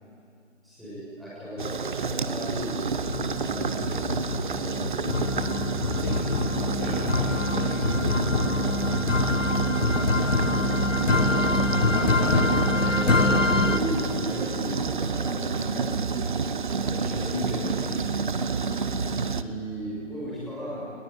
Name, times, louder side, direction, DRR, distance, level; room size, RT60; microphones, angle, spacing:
voice 1, 0.6-2.9 3.4-5.5 6.8-7.2 11.5-12.0 12.7-15.9 16.8-18.1 19.3-20.9, left 1 dB, ahead, -10 dB, 6.6 m, -35 dB
sound 1, 1.6-19.4, right 5 dB, 40° right, 0.9 m, -29 dB
sound 2, 2.1-2.6 3.1-13.8, left 2 dB, 90° left, 1.6 m, -25 dB
voice 2, 5.8-8.4 19.0-19.3, left 3 dB, 15° left, 1 dB, 1.3 m, -39 dB
23.5 x 20.5 x 9.9 m, 2.5 s
figure-of-eight pair, 160°, 37 cm